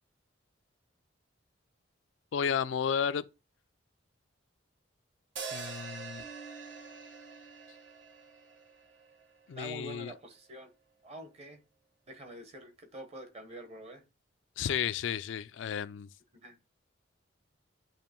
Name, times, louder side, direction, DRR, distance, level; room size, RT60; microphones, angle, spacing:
voice 1, 2.3-3.2 5.5-6.2 9.5-10.1 14.6-16.1, left 7 dB, 70° left, 0.4 m, -32 dB
sound 1, 5.4-9.6, right 5 dB, 70° right, 1.1 m, -45 dB
Bass guitar, 6.2-8.6, right 4 dB, 50° right, 1.8 m, -53 dB
voice 2, 9.6-10.7 11.0-11.6 12.1-14.0 16.4-16.6, right 1 dB, 35° right, 1.1 m, -46 dB
8.7 x 3.0 x 4.4 m
head